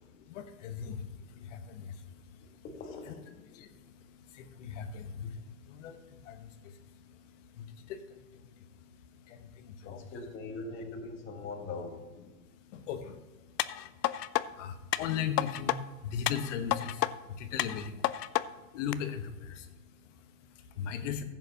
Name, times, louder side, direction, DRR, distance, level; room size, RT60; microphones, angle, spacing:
voice 1, 0.1-2.6 3.1-10.1 10.5-10.6 12.3-21.2, left 7 dB, 50° left, 8 dB, 1.2 m, -40 dB
voice 2, 2.6-3.2 9.8-12.0, left 3 dB, 25° left, 3 dB, 1.6 m, -41 dB
sound 1, 13.6-14.4 14.9-15.8 16.3-17.1 17.6-18.4 18.9-19.0, left 14 dB, 80° left, 0.6 m, -30 dB
15.5 x 7.7 x 2.9 m, 1.2 s
hypercardioid pair, 145°, 49 cm